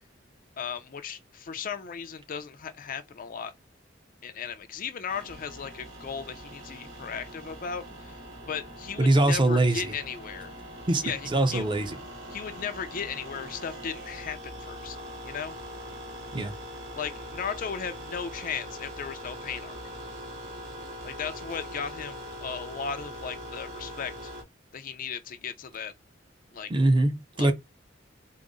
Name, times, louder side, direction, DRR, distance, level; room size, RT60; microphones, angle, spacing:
voice 1, 0.6-3.5 4.2-8.2 8.5-10.5 11.0-11.7 12.3-15.0 15.2-15.6 17.0-19.8 21.0-24.3 24.7-25.9 26.5-26.7 27.4-27.5, left 6 dB, 45° left, 0.4 m, -36 dB
sound 1, 5.1-24.4, equal, 80° right, 1.5 m, -42 dB
voice 2, 9.0-9.9 10.9-12.0 16.3-16.5 26.7-27.5, right 2 dB, 25° right, 0.5 m, -23 dB
3.7 x 2.0 x 3.6 m
head